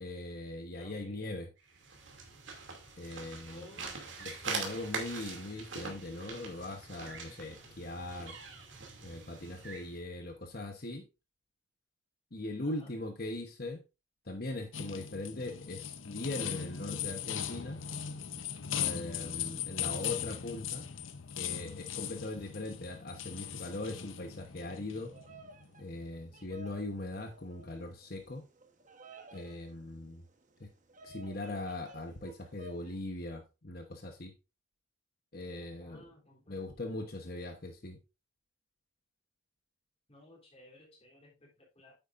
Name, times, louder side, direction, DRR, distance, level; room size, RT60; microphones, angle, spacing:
voice 1, 0.0-1.5 3.0-3.6 4.2-8.4 9.0-11.0 12.3-13.8 14.2-17.8 18.7-20.9 21.3-25.1 25.8-28.4 29.3-30.2 30.6-30.7 31.0-34.3 35.3-36.0 36.5-38.0, left 2 dB, 45° left, 1.1 m, -40 dB
voice 2, 0.8-1.2 3.5-4.1 12.6-12.9 19.2-19.8 35.8-37.1 40.1-42.0, left 1 dB, 30° left, 3.4 m, -57 dB
sound 1, 1.7-9.9, right 4 dB, 60° right, 2.7 m, -43 dB
sound 2, 14.7-26.3, left 9 dB, 70° left, 0.7 m, -39 dB
Bird vocalization bird call bird song, 24.9-33.0, right 2 dB, 35° right, 1.2 m, -55 dB
9.1 x 8.7 x 2.6 m
head